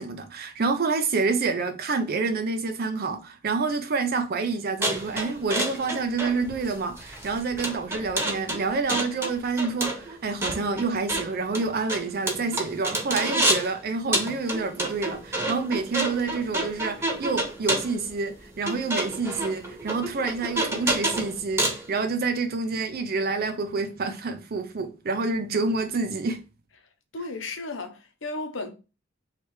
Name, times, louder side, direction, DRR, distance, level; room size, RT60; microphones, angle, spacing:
voice 1, 0.0-26.4, right 4 dB, 50° right, 0.5 m, -28 dB
sound 1, 4.8-13.7 14.1-21.9, right 1 dB, 10° right, 1.1 m, -29 dB
voice 2, 27.1-28.7, left 2 dB, 75° left, 0.9 m, -34 dB
3.3 x 3.2 x 4.7 m
head